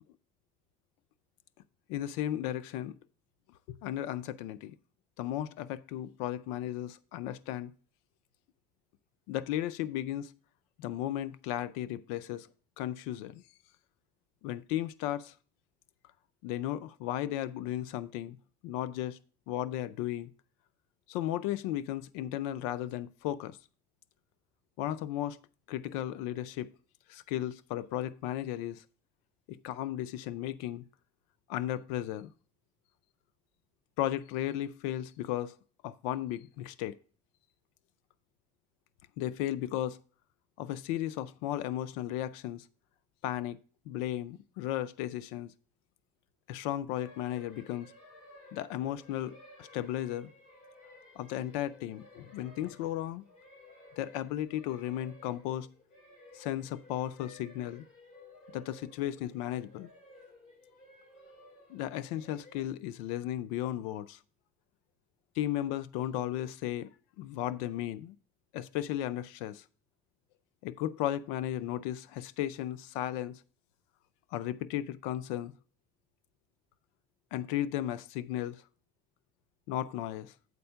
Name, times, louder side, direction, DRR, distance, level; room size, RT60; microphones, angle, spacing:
voice 1, 1.9-3.0 3.7-4.8 5.2-7.7 9.3-10.3 10.8-12.5 12.8-13.4 14.4-15.3 16.4-18.4 18.6-19.2 19.5-20.3 21.1-23.6 24.8-25.4 25.7-26.7 27.1-28.8 29.5-30.8 31.5-32.3 34.0-35.6 35.8-37.0 39.2-40.0 40.6-42.6 43.2-43.6 43.9-45.5 46.5-47.9 48.5-50.3 51.2-53.2 54.0-55.7 56.3-57.8 58.5-59.9 61.7-64.2 65.4-68.2 68.5-69.6 70.6-73.4 74.3-75.5 77.3-78.6 79.7-80.3, left 12 dB, 90° left, 0.5 m, -35 dB
sound 1, 46.9-62.6, left 2 dB, 50° left, 3.6 m, -56 dB
8.3 x 4.3 x 5.5 m
cardioid pair, 130°, 18 cm